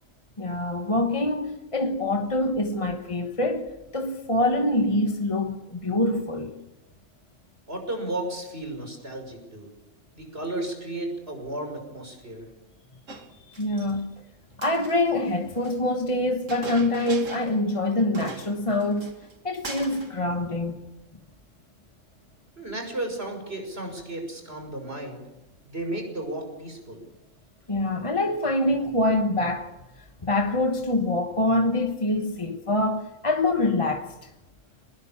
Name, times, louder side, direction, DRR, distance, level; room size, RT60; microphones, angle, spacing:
voice 1, 0.4-6.6 13.5-14.1 14.6-19.1 19.4-20.8 27.7-29.7 30.2-34.3, left 1 dB, 25° left, 1.3 m, -25 dB
voice 2, 7.7-9.7 10.2-12.5 22.6-25.2 25.7-27.0, right 1 dB, 50° right, 6.2 m, -34 dB
Chink clink, 13.1-13.9 14.5-15.8 16.5-17.6 17.9-18.0 18.1-19.3 19.6-20.2, right 3 dB, 85° right, 2.6 m, -40 dB
24.5 x 20.0 x 7.3 m
omnidirectional pair, 1.3 m